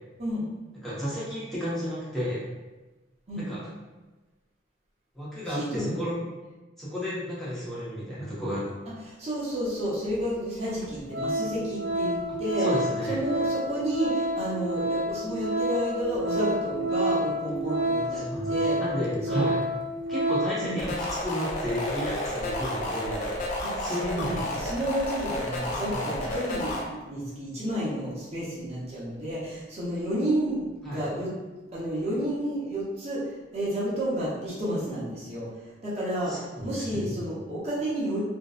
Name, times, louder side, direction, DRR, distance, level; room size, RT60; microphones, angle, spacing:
voice 1, 0.8-2.4 3.4-3.6 5.1-6.1 6.8-8.7 12.6-13.2 18.2-19.6 20.1-23.3 23.8-24.4 25.9-26.1 30.8-31.0 36.3-37.1, equal, ahead, -10 dB, 0.8 m, -32 dB
voice 2, 5.5-6.0 9.0-12.7 13.1-18.8 19.3-19.5 20.6-20.8 23.6-23.7 24.1-31.3 31.7-35.5 35.8-38.2, equal, 35° right, -8 dB, 0.7 m, -31 dB
Organ, 10.1-10.2 10.7-10.8 11.1-20.7 21.0-21.2, right 1 dB, 65° right, 0.4 m, -29 dB
sound 1, 20.8-26.8, left 1 dB, 40° left, 0.4 m, -31 dB
2.6 x 2.1 x 2.3 m, 1.2 s
head